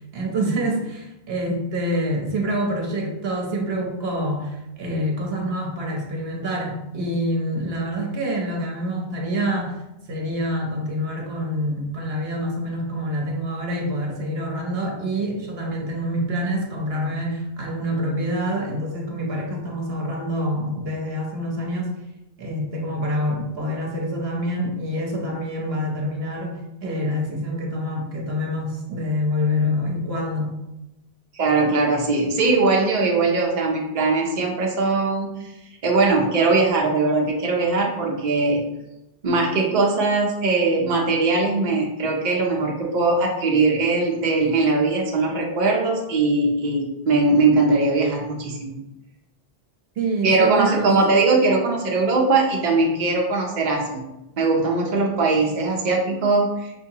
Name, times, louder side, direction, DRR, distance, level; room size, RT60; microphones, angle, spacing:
voice 1, 0.1-9.7 10.1-21.9 22.4-30.6 50.0-51.0, equal, 70° right, 0 dB, 1.0 m, -26 dB
voice 2, 31.3-35.5 35.8-38.6 39.2-48.7 50.2-54.0 54.4-56.7, right 3 dB, 50° right, -1 dB, 0.8 m, -20 dB
6.0 x 2.7 x 2.8 m, 0.94 s
omnidirectional pair, 1.1 m